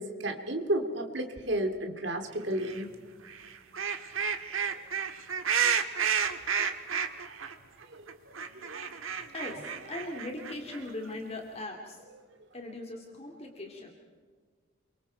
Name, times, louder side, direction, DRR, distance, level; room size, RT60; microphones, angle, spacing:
voice 1, 0.0-2.9 4.7-4.8 6.9-7.3 7.9-8.3 8.6-8.9, right 1 dB, 60° right, 6 dB, 2.4 m, -33 dB
sound 1, 2.6-2.8 3.3-7.5 7.8-7.9 8.1-10.9, right 7 dB, 90° right, 1.6 m, -31 dB
voice 2, 9.3-12.0 12.5-13.9, left 2 dB, 30° left, 2 dB, 2.5 m, -39 dB
28.5 x 24.0 x 4.6 m, 1.5 s
head